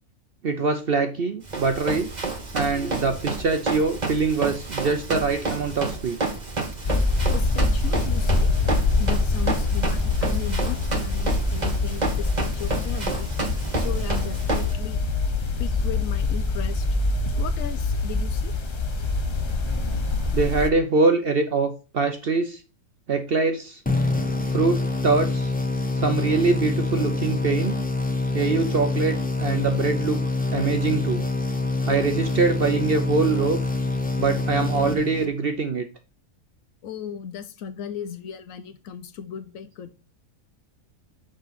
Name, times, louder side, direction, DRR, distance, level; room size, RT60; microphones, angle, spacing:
voice 1, 0.4-2.1 2.5-6.2 20.3-22.6 23.1-23.8 24.5-25.5 26.0-27.8 28.3-30.2 30.5-31.3 31.9-33.6 34.2-35.8, right 4 dB, 50° right, 7 dB, 0.7 m, -23 dB
Run, 1.5-14.7, right 3 dB, 30° right, 1.3 m, -30 dB
sound 1, 6.8-20.7, left 3 dB, 50° left, 0.3 m, -24 dB
voice 2, 7.3-8.5 9.0-13.3 13.7-15.0 15.6-16.9 17.4-18.5 36.8-40.0, left 8 dB, 70° left, 11 dB, 1.0 m, -36 dB
sound 2, 23.9-35.6, left 2 dB, 10° left, 0.7 m, -26 dB
6.6 x 5.0 x 4.0 m, 0.31 s
omnidirectional pair, 1.6 m